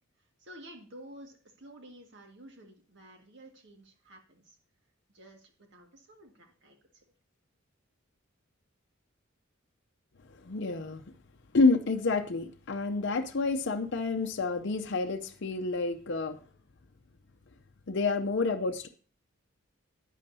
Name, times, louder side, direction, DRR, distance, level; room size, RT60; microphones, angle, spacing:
voice 1, 0.4-4.6 5.1-7.0, right 1 dB, 60° right, 2 dB, 1.9 m, -52 dB
voice 2, 10.4-11.0 11.5-16.4 17.9-18.9, left 3 dB, 60° left, 6 dB, 0.6 m, -28 dB
11.0 x 9.3 x 2.8 m, 0.41 s
head